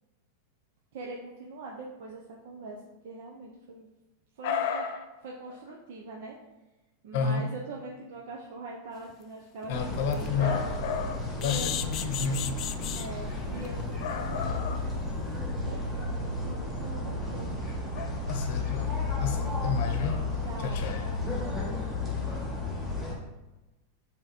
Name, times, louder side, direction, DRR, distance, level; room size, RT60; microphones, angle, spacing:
voice 1, 0.9-2.8 3.0-3.9 4.4-4.8 5.2-6.4 7.0-9.9 10.1-10.6 11.4-11.7 12.9-14.9 15.7-17.7 19.3-19.6 20.3-21.8, right 3 dB, 55° right, 0.8 m, -42 dB
voice 2, 4.4-5.0 7.1-7.5 9.7-12.6 14.0-14.8 17.9-20.3 20.6-21.1, left 6 dB, 50° left, 0.8 m, -31 dB
sound 1, 9.1-9.2 9.6-9.7 10.1-10.3 11.4-13.1 13.6-13.8 14.1-14.2 14.5-14.6, left 11 dB, 30° left, 0.3 m, -34 dB
sound 2, 9.7-23.1, left 3 dB, ahead, 1.5 m, -33 dB
7.3 x 3.6 x 4.5 m
supercardioid pair, 170°, 0 cm